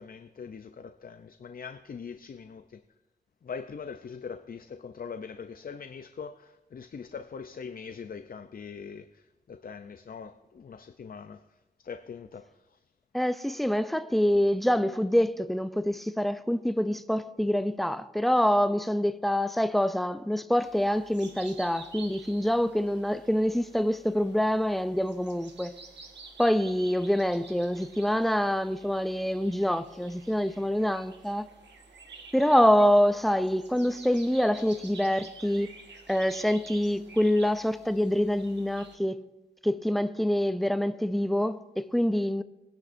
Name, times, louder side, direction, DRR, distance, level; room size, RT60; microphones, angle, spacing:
voice 1, 0.0-2.8 3.4-11.4 11.8-12.8, left 6 dB, 55° left, 0.5 m, -42 dB
voice 2, 13.1-25.8 26.4-31.5 32.3-35.7 36.1-39.2 39.6-42.4, equal, ahead, 0.5 m, -26 dB
sound 1, 20.6-39.0, right 4 dB, 90° right, 1.4 m, -50 dB
21.5 x 10.5 x 2.6 m
wide cardioid pair, 90°, 18 cm